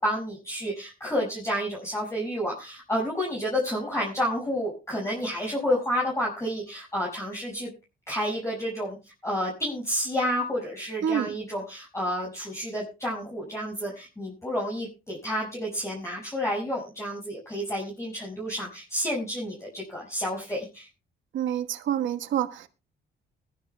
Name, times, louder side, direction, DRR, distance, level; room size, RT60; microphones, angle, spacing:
voice 1, 0.0-7.7 8.1-9.0 9.2-20.9, equal, 15° left, -3 dB, 5.9 m, -30 dB
voice 2, 11.0-11.3 21.3-22.7, right 9 dB, 75° right, 7 dB, 1.4 m, -27 dB
22.0 x 12.0 x 2.2 m, 0.29 s
cardioid pair, 90°, 20 cm